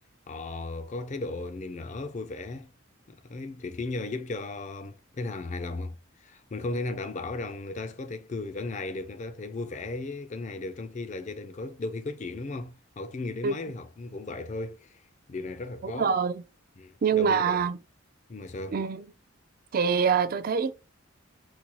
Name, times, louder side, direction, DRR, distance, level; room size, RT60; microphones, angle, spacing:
voice 1, 0.3-2.7 3.1-15.0 15.3-16.2 16.8-17.6 18.3-18.8, left 2 dB, 35° left, 0.4 m, -36 dB
voice 2, 15.8-16.4 17.0-17.8 18.7-19.0 19.7-20.7, right 6 dB, 45° right, 0.4 m, -25 dB
4.1 x 2.3 x 3.0 m
head